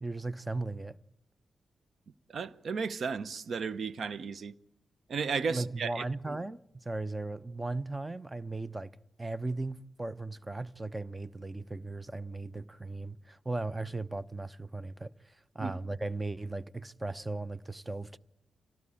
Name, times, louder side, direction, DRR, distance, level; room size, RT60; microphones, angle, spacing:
voice 1, 0.0-1.0 5.5-8.9 9.2-15.1 15.5-18.2, right 2 dB, 25° right, 0.8 m, -37 dB
voice 2, 2.3-4.5 5.1-6.4 15.6-15.7, right 5 dB, 65° right, 0.9 m, -34 dB
26.0 x 18.0 x 8.7 m
supercardioid pair, 45°, 0 cm